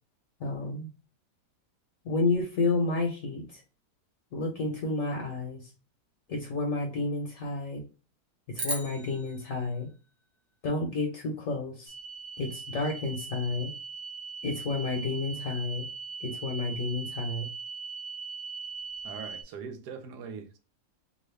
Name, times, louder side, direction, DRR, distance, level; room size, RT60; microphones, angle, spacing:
voice 1, 0.4-0.9 2.0-3.6 4.3-5.7 6.3-7.8 8.5-9.9 10.6-11.9 12.4-13.7 14.4-15.9 16.2-17.5, left 3 dB, 60° left, 1.0 m, -30 dB
sound 1, 8.5-11.0, right 1 dB, 40° right, 0.6 m, -38 dB
sound 2, 11.9-19.4, right 5 dB, 60° right, 1.0 m, -40 dB
voice 2, 19.0-20.6, right 6 dB, 80° right, 1.2 m, -41 dB
3.0 x 2.4 x 3.1 m
omnidirectional pair, 1.7 m